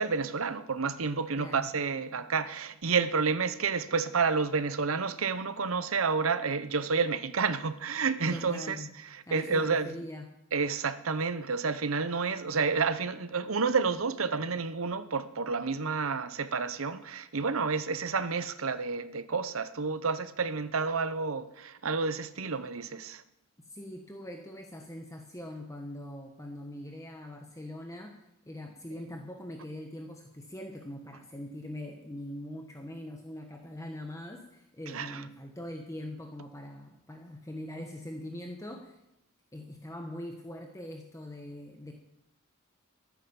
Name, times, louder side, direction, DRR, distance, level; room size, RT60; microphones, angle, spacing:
voice 1, 0.0-8.8 9.1-9.9 10.5-23.2 34.9-35.2, right 5 dB, 75° right, 0.9 m, -30 dB
voice 2, 1.4-1.7 8.3-8.9 9.3-10.3 23.7-39.0 39.5-41.9, left 1 dB, 15° left, 1.3 m, -42 dB
13.5 x 9.9 x 7.1 m
head